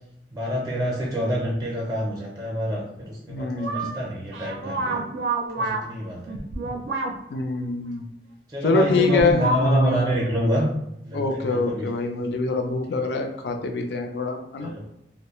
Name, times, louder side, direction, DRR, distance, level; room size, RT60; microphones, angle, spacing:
voice 1, 0.3-5.0 5.6-6.4 8.5-10.7 11.0-11.9 14.6-14.9, equal, 20° right, -3 dB, 0.5 m, -26 dB
voice 2, 3.3-3.9 7.3-8.1 8.6-10.0 11.1-14.7, left 3 dB, 75° left, 5 dB, 0.4 m, -25 dB
sound 1, 3.6-3.9 4.3-5.8 6.3-7.1 8.9-10.1 10.3-10.4, right 3 dB, 75° right, 0.4 m, -28 dB
2.2 x 2.0 x 2.9 m, 0.80 s
head